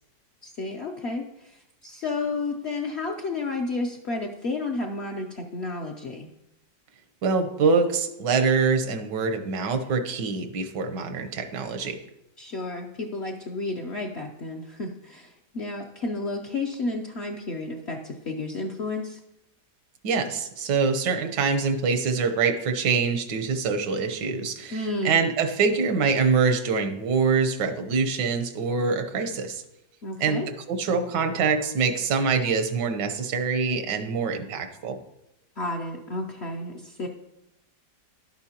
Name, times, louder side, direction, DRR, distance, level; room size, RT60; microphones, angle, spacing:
voice 1, 0.4-6.3 12.4-19.2 24.7-25.1 30.0-30.5 35.6-37.1, left 2 dB, 55° left, 1 dB, 0.7 m, -31 dB
voice 2, 7.2-12.0 20.0-29.6 30.2-35.0, right 5 dB, 85° right, 7 dB, 1.5 m, -25 dB
11.5 x 8.7 x 2.9 m, 0.86 s
omnidirectional pair, 1.8 m